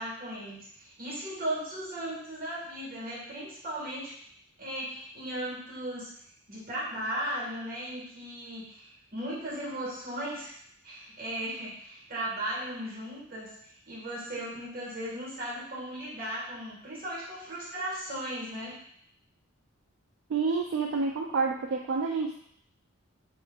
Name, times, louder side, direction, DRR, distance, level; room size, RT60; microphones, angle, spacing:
voice 1, 0.0-4.1 4.6-6.1 6.5-10.5 10.8-18.8, right 1 dB, 45° right, -6 dB, 1.6 m, -36 dB
voice 2, 20.3-22.4, right 4 dB, 65° right, 1 dB, 0.3 m, -28 dB
5.1 x 3.1 x 2.3 m, 0.67 s
head